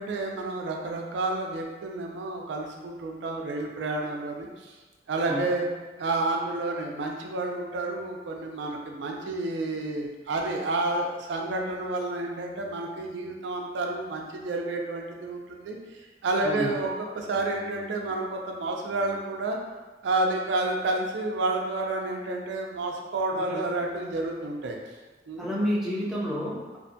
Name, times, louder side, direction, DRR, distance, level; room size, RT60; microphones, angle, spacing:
voice 1, 0.0-4.8 5.1-5.7 6.0-15.8 16.2-19.6 20.0-24.8 25.3-25.5, right 2 dB, 90° right, 1 dB, 0.4 m, -30 dB
voice 2, 23.3-23.6 25.4-26.8, equal, ahead, -6 dB, 0.4 m, -30 dB
2.5 x 2.1 x 2.6 m, 1.2 s
head